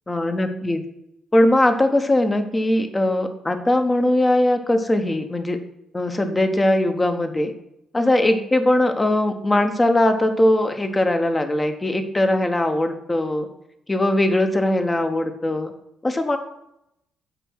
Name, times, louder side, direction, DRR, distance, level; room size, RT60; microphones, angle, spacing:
voice 1, 0.1-0.8 1.3-5.6 5.9-7.5 7.9-13.5 13.9-15.7 16.0-16.4, left 1 dB, 20° left, 6 dB, 1.0 m, -20 dB
6.8 x 4.5 x 6.2 m, 0.79 s
figure-of-eight pair, 45°, 0 cm